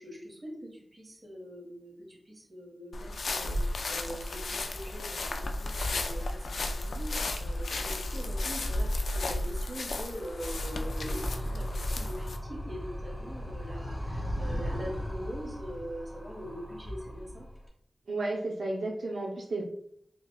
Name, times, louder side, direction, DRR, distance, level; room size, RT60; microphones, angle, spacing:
voice 1, 0.0-17.5, equal, 35° right, -2 dB, 1.4 m, -43 dB
sound 1, 2.9-12.4, left 2 dB, 85° left, 0.3 m, -33 dB
Animal, 9.5-17.7, equal, 10° left, 1.2 m, -38 dB
voice 2, 18.1-19.6, right 2 dB, 90° right, -2 dB, 0.6 m, -32 dB
5.4 x 2.2 x 2.3 m, 0.68 s
wide cardioid pair, 80°, 0 cm